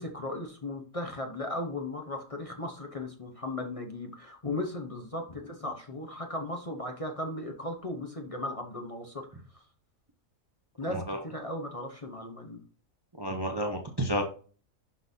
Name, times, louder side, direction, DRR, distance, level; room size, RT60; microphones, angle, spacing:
voice 1, 0.0-9.6 10.8-12.6, left 1 dB, 30° left, 2 dB, 0.9 m, -37 dB
voice 2, 10.9-11.2 13.2-14.2, equal, 25° right, 2 dB, 0.7 m, -31 dB
11.5 x 4.0 x 2.7 m, 0.41 s
omnidirectional pair, 1.5 m